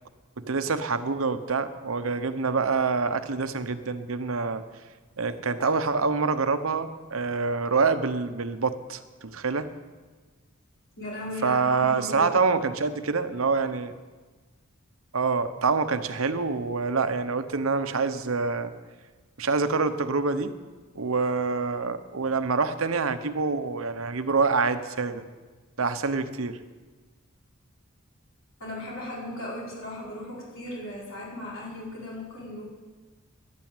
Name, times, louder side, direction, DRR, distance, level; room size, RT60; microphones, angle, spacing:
voice 1, 0.4-4.6 5.2-9.7 11.4-13.9 15.1-18.7 19.4-20.5 21.0-25.2 25.8-26.6, right 4 dB, 75° right, 11 dB, 0.9 m, -26 dB
voice 2, 11.0-12.3 28.6-32.6, left 1 dB, 65° left, -5 dB, 5.1 m, -37 dB
11.5 x 9.1 x 8.9 m, 1.3 s
head